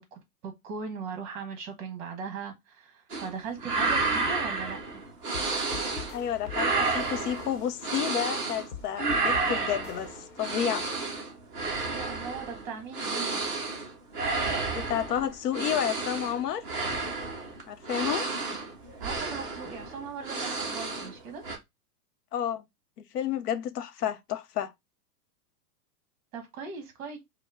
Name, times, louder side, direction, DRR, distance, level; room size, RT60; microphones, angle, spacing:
voice 1, 0.0-4.8 11.9-13.4 19.0-21.4 26.3-27.2, right 5 dB, 30° right, 1.1 m, -39 dB
sound 1, 3.1-3.3 3.6-6.2 6.4-8.7 8.9-21.2 21.4-21.6, right 3 dB, 5° right, 0.4 m, -31 dB
sound 2, 5.3-11.0, left 7 dB, 55° left, 1.0 m, -46 dB
voice 2, 6.1-10.9 14.7-16.8 17.7-18.3 22.3-22.7 23.1-24.7, left 10 dB, 85° left, 0.7 m, -31 dB
5.3 x 2.1 x 3.5 m
supercardioid pair, 170°, 46 cm